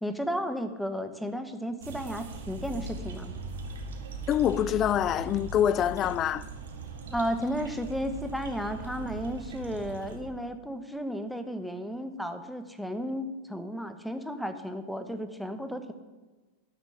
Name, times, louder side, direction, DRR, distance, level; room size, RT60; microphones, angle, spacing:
voice 1, 0.0-3.3 7.1-15.9, equal, ahead, 1.2 m, -33 dB
sound 1, 1.8-10.2, right 3 dB, 60° right, 2.0 m, -40 dB
voice 2, 4.3-6.4, left 10 dB, 30° left, 0.5 m, -25 dB
12.5 x 7.4 x 7.9 m
figure-of-eight pair, 90°, 0 cm